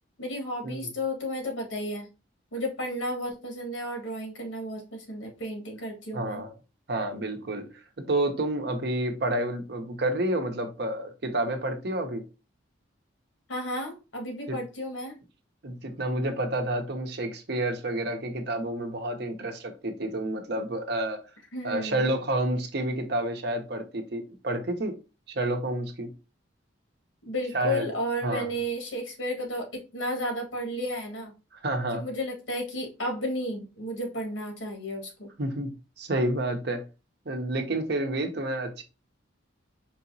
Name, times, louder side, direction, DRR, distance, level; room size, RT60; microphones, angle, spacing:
voice 1, 0.2-2.1 2.5-6.4 13.5-15.1 21.5-22.1 27.2-31.3 31.9-35.3, equal, 85° left, 1.5 m, -33 dB
voice 2, 6.1-6.5 6.9-7.7 8.0-12.2 14.5-14.6 15.6-21.2 21.6-24.9 25.3-26.1 27.5-27.9 28.2-28.5 31.5-32.1 35.4-36.8 37.3-38.8, right 1 dB, 55° right, 0.7 m, -29 dB
4.7 x 2.9 x 2.6 m
head